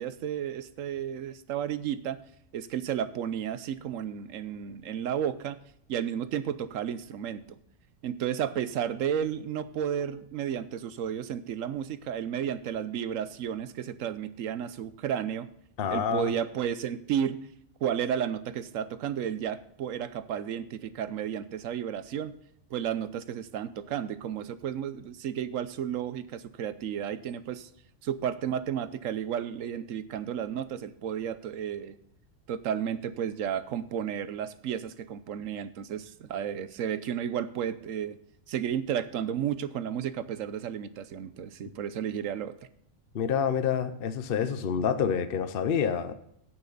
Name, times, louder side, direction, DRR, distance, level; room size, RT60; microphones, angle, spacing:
voice 1, 0.0-2.2 2.5-5.6 5.9-7.4 8.0-15.5 15.9-17.4 17.8-22.3 22.7-27.7 28.0-32.0 32.5-38.2 38.5-42.6, right 9 dB, 75° right, 13 dB, 1.1 m, -32 dB
voice 2, 15.8-16.3 43.1-46.1, left 7 dB, 50° left, 10 dB, 0.8 m, -27 dB
17.0 x 5.9 x 3.9 m, 0.73 s
omnidirectional pair, 1.4 m